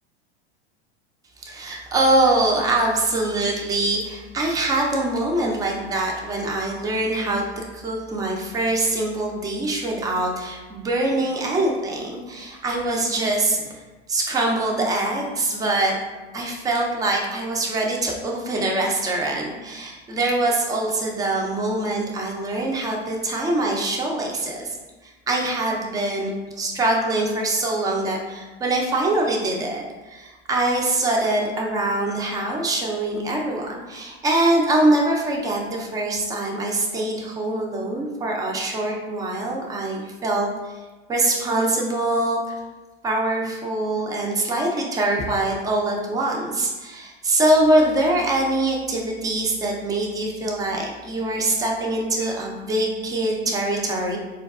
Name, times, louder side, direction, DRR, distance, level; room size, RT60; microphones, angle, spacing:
voice 1, 1.4-13.7 14.1-16.0 16.3-24.8 25.0-26.3 26.6-40.5 41.1-42.6 43.0-54.2, right 2 dB, 10° right, -1 dB, 0.4 m, -23 dB
4.4 x 2.2 x 2.3 m, 1.2 s
hypercardioid pair, 115°, 32 cm